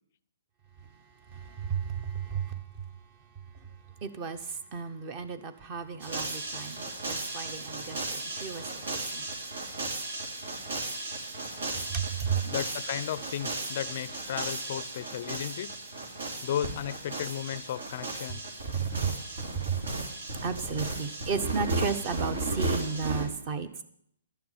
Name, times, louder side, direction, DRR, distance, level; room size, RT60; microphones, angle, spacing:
voice 1, 1.3-2.6 4.0-9.3 11.9-12.4 18.7-19.1 19.4-19.8 20.4-23.8, right 6 dB, 30° right, 12 dB, 0.9 m, -34 dB
sound 1, 6.0-23.3, right 2 dB, 75° right, 3.1 m, -35 dB
voice 2, 12.4-15.7 16.4-18.4, left 11 dB, 45° left, 18 dB, 0.4 m, -34 dB
11.5 x 6.9 x 9.1 m, 0.69 s
hypercardioid pair, 160°, 0 cm